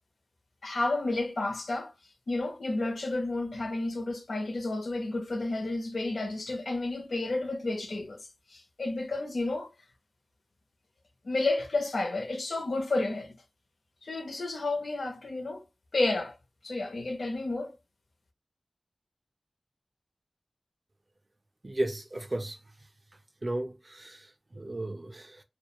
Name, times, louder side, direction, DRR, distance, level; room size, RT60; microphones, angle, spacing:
voice 1, 0.6-1.9 2.3-8.2 8.5-9.7 11.2-13.3 14.0-15.6 15.9-16.3 16.6-17.8, left 2 dB, 75° left, 0.5 m, -31 dB
voice 2, 21.6-22.6 23.4-25.4, right 1 dB, 35° right, 0.4 m, -35 dB
2.3 x 2.1 x 2.8 m
wide cardioid pair, 85°, 0 cm